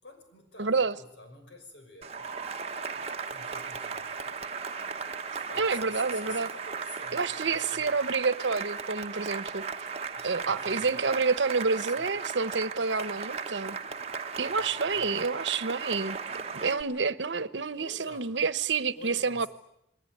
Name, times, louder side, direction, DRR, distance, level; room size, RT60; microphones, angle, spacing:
voice 1, 0.0-2.2 2.8-4.4 5.3-7.9 10.1-11.1 11.6-12.2 12.7-13.2 14.4-15.1 17.6-18.4 19.0-19.5, left 2 dB, 85° left, 6.4 m, -49 dB
voice 2, 0.6-1.0 5.6-6.5 7.1-9.6 10.2-13.8 14.4-16.2 16.5-19.5, right 4 dB, 85° right, 1.0 m, -28 dB
Cheering / Applause, 2.0-16.8, right 5 dB, 35° right, 1.1 m, -36 dB
29.0 x 21.0 x 9.5 m
head